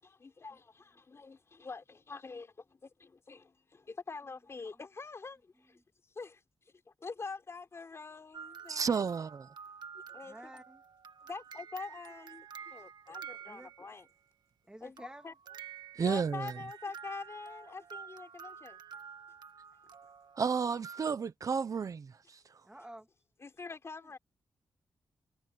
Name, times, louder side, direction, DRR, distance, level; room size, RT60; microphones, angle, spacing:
voice 1, 0.0-5.8 6.1-9.1 9.9-10.5 11.2-14.1 14.8-15.3 16.0-18.8 23.4-24.2, left 4 dB, 35° left, 4.4 m, -45 dB
sound 1, 8.3-14.1 15.0-21.1, right 7 dB, 70° right, 1.7 m, -49 dB
voice 2, 8.7-9.5 16.0-16.5 20.4-22.4, right 6 dB, 50° right, 0.8 m, -32 dB
voice 3, 10.2-10.8 13.5-13.7 14.7-15.3 22.6-23.1 24.0-24.1, right 1 dB, 10° right, 2.3 m, -51 dB
wide cardioid pair, 125°, 8 cm